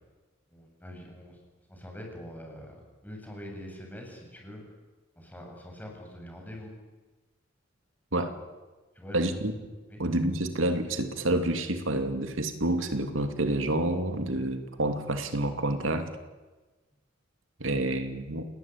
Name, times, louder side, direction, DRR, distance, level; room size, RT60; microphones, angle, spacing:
voice 1, 0.5-1.4 1.7-4.6 5.2-6.7 8.9-9.4 9.9-10.0, equal, 10° left, 1 dB, 7.5 m, -44 dB
voice 2, 9.1-9.5 10.0-16.1 17.6-18.5, right 1 dB, 85° right, 7 dB, 2.7 m, -28 dB
29.0 x 19.5 x 9.3 m, 1.2 s
head